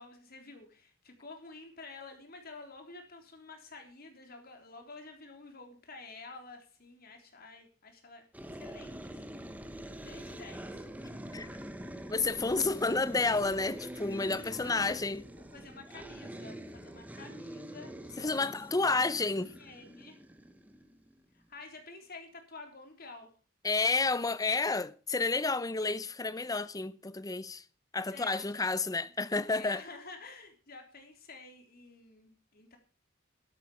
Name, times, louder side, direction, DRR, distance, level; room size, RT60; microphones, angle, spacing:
voice 1, 0.0-9.3 9.7-10.9 14.3-15.0 15.4-18.5 19.4-20.2 21.3-23.3 28.1-28.6 29.4-32.8, left 3 dB, 50° left, 3.6 m, -50 dB
sound 1, 8.3-21.2, right 1 dB, 10° right, 1.2 m, -45 dB
voice 2, 12.1-15.2 18.2-19.5 23.6-27.6 27.9-29.8, left 3 dB, 20° left, 0.6 m, -30 dB
13.0 x 12.5 x 4.9 m
head